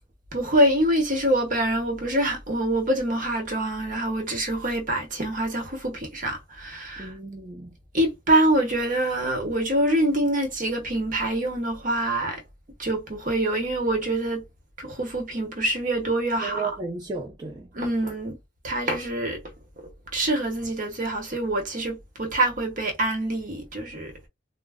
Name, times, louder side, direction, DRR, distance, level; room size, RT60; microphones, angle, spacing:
voice 1, 0.3-7.1 7.9-12.4 12.8-14.4 14.8-16.7 17.7-18.3 18.6-19.4 20.1-24.1, right 1 dB, 45° right, 0.9 m, -25 dB
voice 2, 7.0-7.7 16.4-17.7, right 4 dB, 20° right, 0.5 m, -34 dB
2.2 x 2.0 x 3.4 m
head